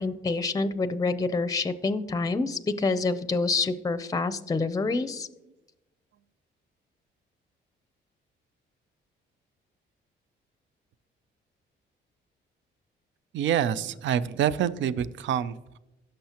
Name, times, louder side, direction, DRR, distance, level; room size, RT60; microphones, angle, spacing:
voice 1, 0.0-5.3, left 3 dB, 20° left, 13 dB, 0.6 m, -27 dB
voice 2, 13.3-15.8, right 9 dB, 70° right, 16 dB, 0.5 m, -27 dB
16.5 x 6.5 x 2.9 m, 0.97 s
cardioid pair, 90°, 20 cm